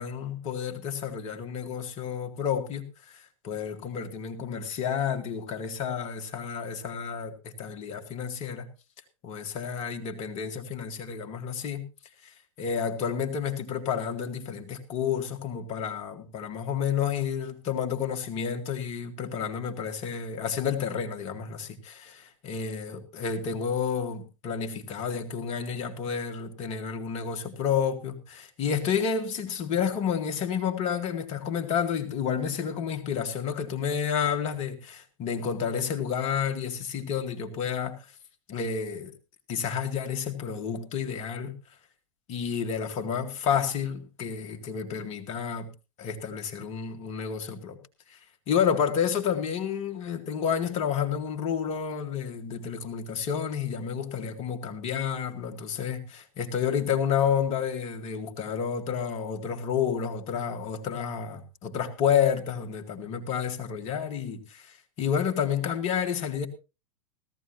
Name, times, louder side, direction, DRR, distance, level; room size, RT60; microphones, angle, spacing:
voice 1, 0.0-8.7 9.2-11.8 12.2-38.0 38.5-39.1 39.5-41.6 42.3-45.7 46.0-47.8 48.1-48.2 48.5-66.5, left 7 dB, 40° left, 2.0 m, -30 dB
17.5 x 14.5 x 2.8 m
figure-of-eight pair, 90°, 16 cm